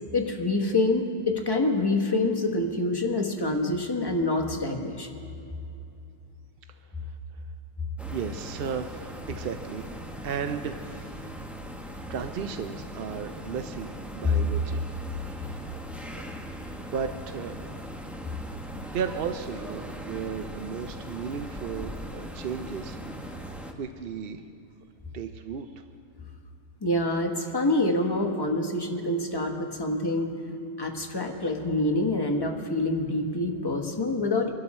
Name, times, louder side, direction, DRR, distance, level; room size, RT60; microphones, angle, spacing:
voice 1, 0.1-5.1 26.8-30.3 30.8-34.5, left 2 dB, 15° left, 2 dB, 1.2 m, -26 dB
sound 1, 8.0-23.7, equal, ahead, 0.8 m, -40 dB
voice 2, 8.1-9.8 10.2-11.2 12.1-15.5 16.1-16.3 16.8-17.5 18.9-23.0 23.8-24.4 25.1-25.8, right 7 dB, 60° right, 8 dB, 0.6 m, -35 dB
24.5 x 12.0 x 4.3 m, 2.6 s
omnidirectional pair, 1.6 m